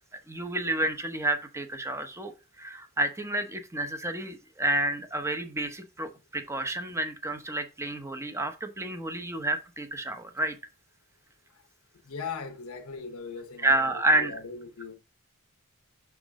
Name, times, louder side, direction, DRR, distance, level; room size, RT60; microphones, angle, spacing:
voice 1, 0.3-2.3 2.6-10.6 13.6-14.3, right 2 dB, 15° right, 0.9 m, -29 dB
voice 2, 12.0-15.0, left 5 dB, 85° left, 1.1 m, -39 dB
6.0 x 6.0 x 3.6 m
head